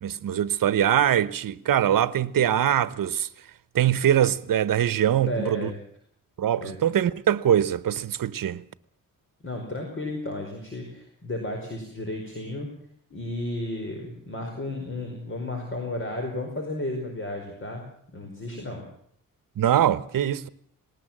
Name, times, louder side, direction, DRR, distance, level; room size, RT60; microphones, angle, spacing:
voice 1, 0.0-3.3 3.7-5.7 6.4-8.6 19.6-20.5, right 10 dB, 70° right, 1.0 m, -23 dB
voice 2, 5.3-5.8 6.6-6.8 9.4-12.7 13.1-17.8 18.1-18.8, left 1 dB, 35° left, 4.9 m, -33 dB
19.5 x 19.0 x 7.4 m
wide cardioid pair, 125°, 35 cm